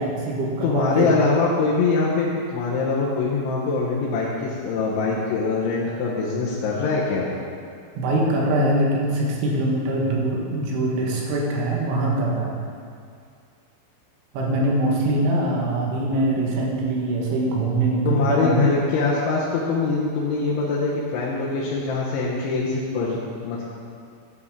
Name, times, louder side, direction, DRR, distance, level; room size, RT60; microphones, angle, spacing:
voice 1, 0.0-1.1 8.0-12.6 14.3-18.7, right 1 dB, 80° right, -2 dB, 3.8 m, -23 dB
voice 2, 0.6-7.3 18.0-23.2 23.4-23.6, left 4 dB, 80° left, -6 dB, 3.4 m, -23 dB
11.0 x 9.6 x 3.7 m, 2.3 s
omnidirectional pair, 5.5 m